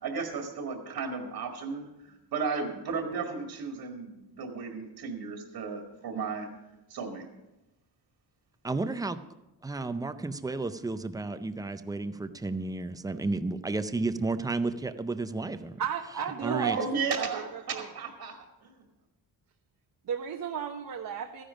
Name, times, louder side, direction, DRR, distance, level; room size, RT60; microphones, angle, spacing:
voice 1, 0.0-6.5 6.9-7.3 16.6-18.7, right 5 dB, 70° right, 3 dB, 2.0 m, -34 dB
voice 2, 8.6-9.2 9.6-15.8 16.4-16.8, right 3 dB, 10° right, 11 dB, 0.5 m, -32 dB
voice 3, 15.8-16.9 17.2-17.9 20.0-21.4, right 8 dB, 55° right, 2 dB, 0.9 m, -34 dB
14.5 x 10.0 x 5.1 m, 0.98 s
cardioid pair, 145°, 39 cm